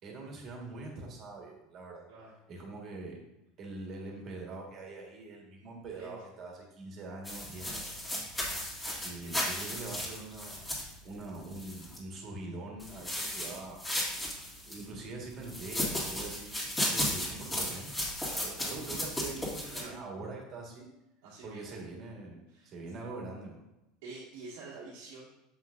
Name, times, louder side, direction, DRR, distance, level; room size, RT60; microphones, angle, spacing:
voice 1, 0.0-2.0 2.5-3.2 3.6-7.9 9.0-13.8 14.6-16.5 16.9-20.9 21.4-23.6, right 3 dB, 35° right, 0 dB, 1.6 m, -43 dB
sound 1, 7.2-12.0 12.8-14.8 15.4-19.8, left 1 dB, 10° left, 1.9 m, -35 dB
voice 2, 7.5-7.9 9.2-9.4 11.0-11.1 13.1-13.5 18.6-18.9 19.7-20.0 21.2-21.8 22.5-22.7 24.0-25.3, right 3 dB, 85° right, -7 dB, 1.7 m, -49 dB
7.0 x 5.9 x 2.5 m, 0.92 s
supercardioid pair, 145°, 0 cm